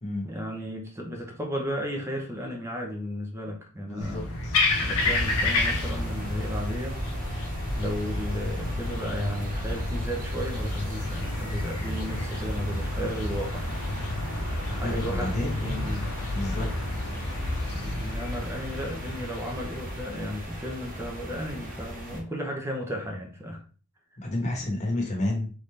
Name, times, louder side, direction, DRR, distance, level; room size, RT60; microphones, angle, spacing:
voice 1, 0.2-4.3 4.8-7.0 7.8-13.6 14.7-16.1 16.5-16.7 17.1-17.3 17.7-23.6 24.4-24.5, equal, 10° right, 1 dB, 0.8 m, -34 dB
voice 2, 3.8-4.5 14.8-15.9 16.3-16.7 24.2-25.5, left 1 dB, 35° left, 1 dB, 1.2 m, -31 dB
sound 1, 4.0-20.0, left 2 dB, 75° left, 1.0 m, -30 dB
sound 2, 5.0-22.2, right 1 dB, 40° right, 1.3 m, -39 dB
3.9 x 3.7 x 3.2 m, 0.39 s
head